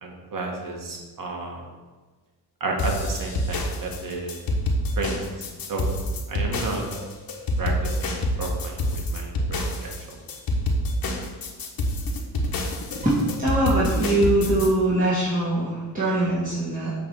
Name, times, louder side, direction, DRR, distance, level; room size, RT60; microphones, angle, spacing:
voice 1, 0.0-1.7 2.6-4.4 5.0-5.3 5.7-5.9 6.3-6.8 7.6-10.2, right 3 dB, 50° right, 0 dB, 1.8 m, -32 dB
sound 1, 2.8-14.7, left 1 dB, 55° left, 1.3 m, -27 dB
voice 2, 13.0-16.9, right 1 dB, 20° right, -11 dB, 2.7 m, -22 dB
8.4 x 3.6 x 6.1 m, 1.3 s
cardioid pair, 90°, 42 cm